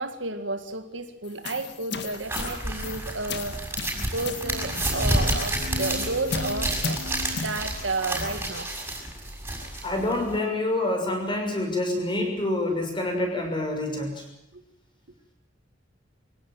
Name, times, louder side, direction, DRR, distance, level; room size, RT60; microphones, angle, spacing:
voice 1, 0.0-3.6 3.9-7.0 7.3-8.7 14.5-14.6, right 3 dB, 70° right, 8 dB, 1.9 m, -32 dB
sound 1, 1.2-8.5, left 4 dB, 60° left, 1.8 m, -36 dB
sound 2, 2.2-10.4, right 1 dB, 10° right, 6.7 m, -30 dB
sound 3, 4.4-8.1, left 2 dB, 35° right, 4.1 m, -39 dB
voice 2, 9.8-14.3, left 2 dB, 25° left, 3 dB, 6.3 m, -27 dB
24.5 x 17.0 x 9.1 m, 0.80 s
head